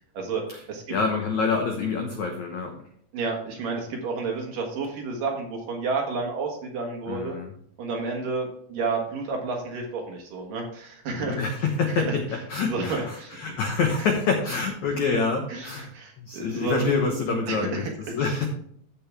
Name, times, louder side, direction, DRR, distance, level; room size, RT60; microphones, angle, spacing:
voice 1, 0.1-1.0 3.1-7.4 7.8-11.4 11.9-12.1 12.7-13.4 15.5-16.8 17.5-17.8 18.2-18.4, right 4 dB, 60° right, 1 dB, 2.9 m, -31 dB
voice 2, 0.9-2.7 7.1-7.5 11.2-12.2 12.5-18.5, left 4 dB, 70° left, 3 dB, 1.7 m, -26 dB
14.5 x 5.8 x 3.5 m, 0.66 s
omnidirectional pair, 5.0 m